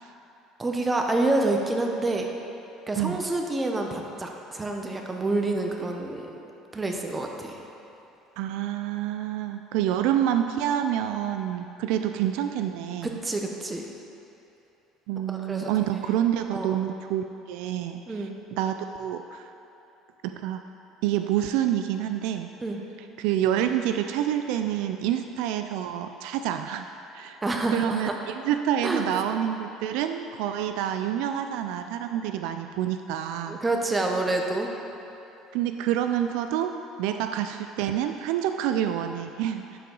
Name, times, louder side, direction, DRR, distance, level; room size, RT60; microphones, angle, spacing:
voice 1, 0.6-2.3 2.9-6.3 6.7-7.6 13.0-13.9 15.3-15.7 16.5-16.7 18.1-18.3 22.6-22.8 27.4-28.2 28.8-29.1 33.5-34.7, right 2 dB, 15° right, 2 dB, 0.9 m, -27 dB
voice 2, 8.4-13.1 15.1-18.3 18.5-19.5 20.2-20.6 21.0-22.5 23.2-26.9 27.1-27.4 27.7-33.6 35.5-39.8, right 10 dB, 80° right, 7 dB, 0.3 m, -27 dB
11.5 x 4.7 x 3.9 m, 2.9 s
supercardioid pair, 110°, 0 cm